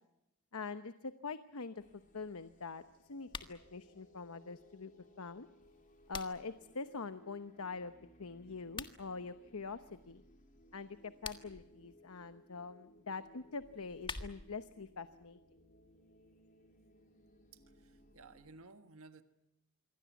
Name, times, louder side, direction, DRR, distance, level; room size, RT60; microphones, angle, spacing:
voice 1, 0.5-1.8 2.1-5.5 6.1-10.2 10.7-15.4, left 4 dB, 75° left, 11 dB, 1.0 m, -44 dB
sound 1, 1.8-18.5, equal, 40° left, 3.8 m, -64 dB
sound 2, 3.2-3.6 5.6-6.6 8.6-9.0 11.0-11.6 13.6-14.6, left 4 dB, 20° left, 1.6 m, -46 dB
voice 2, 17.5-19.2, right 3 dB, 70° right, 9 dB, 1.5 m, -57 dB
27.0 x 23.0 x 7.2 m, 0.88 s
head